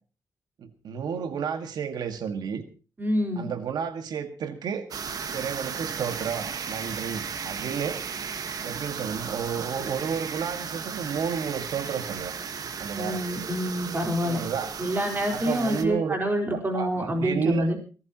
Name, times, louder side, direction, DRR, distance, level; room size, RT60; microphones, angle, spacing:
voice 1, 0.6-2.6 3.4-4.9 5.3-8.0 8.6-12.3 12.8-13.2 14.2-14.7 15.3-16.1 16.5-17.7, right 7 dB, 80° right, 8 dB, 1.9 m, -31 dB
voice 2, 3.0-3.5 12.9-14.4 14.8-17.8, equal, 30° right, 2 dB, 4.4 m, -27 dB
sound 1, 4.9-15.9, right 6 dB, 65° right, 1.5 m, -35 dB
23.5 x 14.5 x 3.0 m, 0.35 s
cardioid pair, 90°, 7 cm